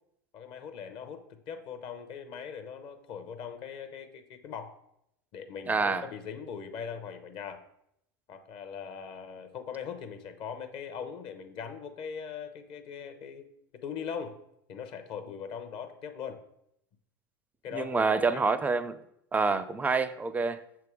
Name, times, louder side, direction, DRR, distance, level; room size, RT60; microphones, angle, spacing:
voice 1, 0.3-4.8 5.3-7.6 8.3-13.5 13.8-14.4 14.7-16.4 17.6-18.5 19.4-19.6, left 7 dB, 45° left, 0.8 m, -40 dB
voice 2, 5.7-6.1 17.7-19.0 19.3-20.6, right 4 dB, 15° right, 0.4 m, -27 dB
6.5 x 3.5 x 4.7 m
hypercardioid pair, 95°, 12 cm